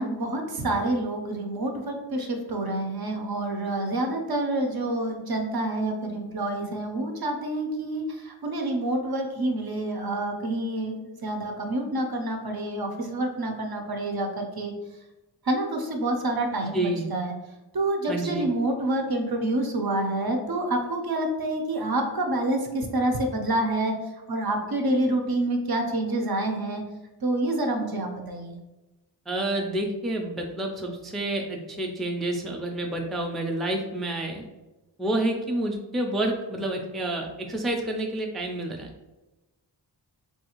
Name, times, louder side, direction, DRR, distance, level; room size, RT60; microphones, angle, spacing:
voice 1, 0.0-14.7 15.5-17.3 17.7-23.9 24.3-26.8 27.2-28.6, right 1 dB, 55° right, 3 dB, 0.6 m, -27 dB
voice 2, 16.6-17.0 18.1-18.5 29.3-34.4 35.0-38.9, right 1 dB, ahead, 1 dB, 0.4 m, -29 dB
3.4 x 2.4 x 2.9 m, 1.1 s
wide cardioid pair, 55°, 43 cm